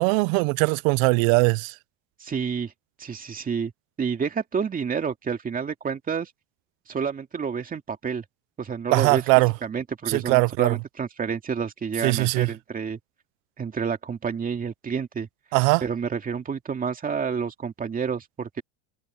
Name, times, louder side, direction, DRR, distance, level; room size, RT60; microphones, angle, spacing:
voice 1, 0.0-1.7 8.9-9.5 10.1-10.8 12.0-12.5 15.5-15.8, right 29 dB, 80° right, 0.6 m, -20 dB
voice 2, 2.2-2.7 3.0-3.7 4.0-6.3 6.9-8.2 8.6-9.2 9.6-13.0 13.6-15.3 15.8-18.6, right 6 dB, 20° right, 2.4 m, -29 dB
cardioid pair, 145°, 39 cm